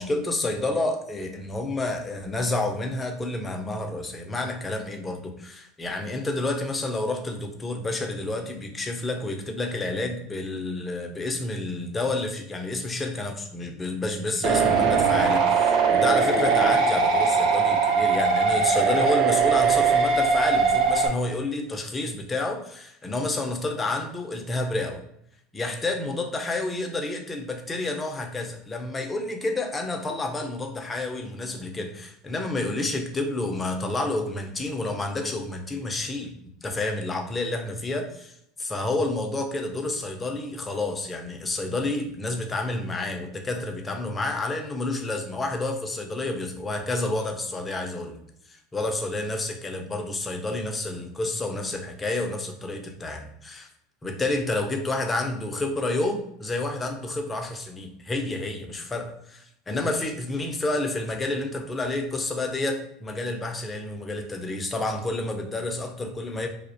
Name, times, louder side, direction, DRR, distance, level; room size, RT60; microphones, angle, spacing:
voice 1, 0.0-25.0 25.5-36.3 36.6-38.3 38.6-48.2 48.5-53.7 54.0-66.5, left 2 dB, 15° left, 4 dB, 0.4 m, -29 dB
sound 1, 14.4-21.1, right 5 dB, 55° right, 0.4 m, -21 dB
2.3 x 2.0 x 2.6 m, 0.72 s
supercardioid pair, 135°, 0 cm